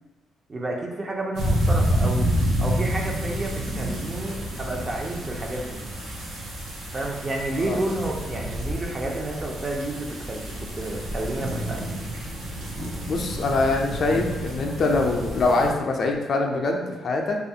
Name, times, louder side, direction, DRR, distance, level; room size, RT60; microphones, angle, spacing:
voice 1, 0.5-2.3 2.6-5.8 6.9-11.9, right 2 dB, 30° right, 0 dB, 0.4 m, -30 dB
sound 1, 1.3-15.7, equal, 90° right, 0.6 m, -29 dB
voice 2, 13.1-17.4, left 3 dB, 55° left, 2 dB, 0.4 m, -24 dB
2.4 x 2.3 x 2.7 m, 1.2 s
cardioid pair, 90°, 0 cm